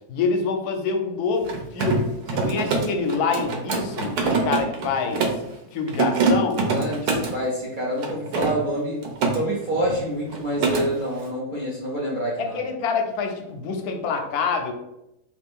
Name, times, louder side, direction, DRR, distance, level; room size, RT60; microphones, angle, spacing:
voice 1, 0.1-5.2 5.7-6.6 7.2-7.3 12.4-14.7, left 5 dB, 80° left, 4 dB, 1.1 m, -26 dB
Mechanisms, 1.4-5.5 5.9-7.4 8.0-9.4 9.7-10.0 10.3-10.9, right 4 dB, 85° right, 1.2 m, -24 dB
voice 2, 6.6-9.1 9.3-12.6, equal, 65° right, -5 dB, 0.5 m, -27 dB
2.9 x 2.4 x 3.5 m, 0.86 s
omnidirectional pair, 1.6 m